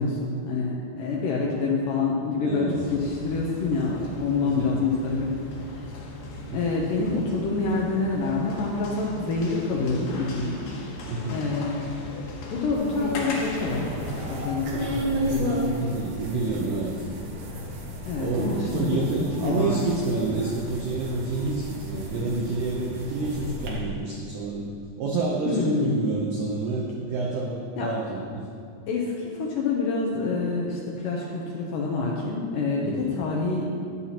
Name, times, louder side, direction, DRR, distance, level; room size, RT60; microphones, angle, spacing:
voice 1, 0.0-5.4 5.7-5.9 6.5-10.6 10.9-12.0 12.5-15.9 18.1-19.0 19.4-19.8 25.5-26.0 27.8-27.9 28.9-33.8, left 3 dB, 85° left, -3 dB, 1.9 m, -27 dB
voice 2, 2.4-2.8 4.4-4.8 6.5-6.6 11.1-11.4 15.8-17.1 18.2-24.6 25.0-28.4 32.8-33.1, right 3 dB, 90° right, -2 dB, 1.9 m, -28 dB
sound 1, 2.7-14.3, left 2 dB, 65° left, 2.4 m, -38 dB
sound 2, 12.7-23.7, right 1 dB, 60° right, 2.3 m, -33 dB
12.5 x 11.0 x 3.0 m, 2.4 s
omnidirectional pair, 5.2 m